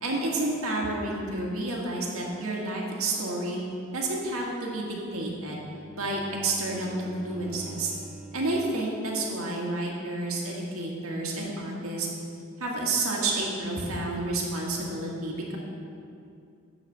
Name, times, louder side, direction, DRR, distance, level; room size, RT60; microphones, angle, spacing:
voice 1, 0.0-3.6 3.9-5.6 6.0-7.9 8.3-12.1 12.6-15.6, right 2 dB, 75° right, -2 dB, 1.9 m, -30 dB
Bowed string instrument, 5.0-8.7, right 2 dB, ahead, 0.5 m, -46 dB
12.0 x 4.2 x 7.4 m, 2.5 s
head